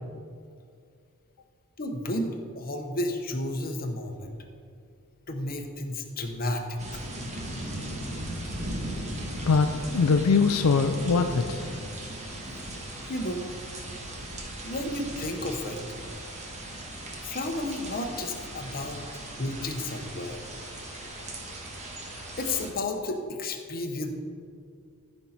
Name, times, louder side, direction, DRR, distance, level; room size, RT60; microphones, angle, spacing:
voice 1, 1.8-4.3 5.3-7.0 13.1-13.5 14.6-15.8 17.2-19.0 19.4-20.4 22.4-24.1, left 1 dB, 45° left, 4 dB, 1.0 m, -32 dB
sound 1, 6.8-22.7, right 1 dB, 30° right, 1.3 m, -38 dB
voice 2, 9.5-11.7, left 4 dB, 80° left, 6 dB, 0.5 m, -22 dB
14.0 x 5.4 x 4.4 m, 2.3 s
head